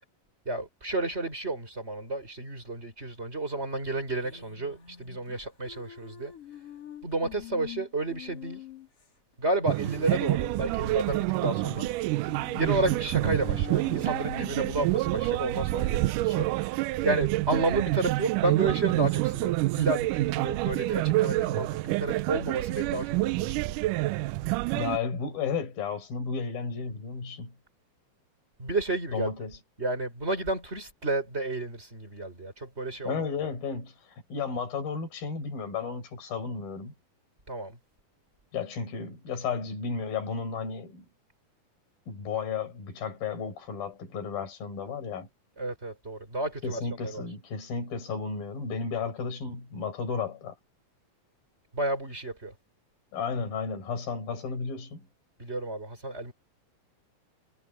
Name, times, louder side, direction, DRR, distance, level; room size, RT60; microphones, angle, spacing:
voice 1, 0.4-6.3 7.0-8.6 9.4-11.9 12.6-16.7 17.0-23.5 28.6-29.3 29.8-33.2 37.5-37.8 45.6-47.2 51.7-52.5 55.4-56.3, right 2 dB, 15° right, 5.0 m, -31 dB
sound 1, 4.2-9.1 9.3-9.4 9.7-9.8 10.3-10.9 11.2-14.9, left 12 dB, 40° left, 4.7 m, -45 dB
sound 2, 9.7-25.0, right 19 dB, 80° right, 1.9 m, -28 dB
voice 2, 24.8-27.5 29.1-29.6 33.1-36.9 38.5-41.0 42.1-45.3 46.6-50.6 53.1-55.1, left 5 dB, 75° left, 7.2 m, -33 dB
omnidirectional pair, 4.2 m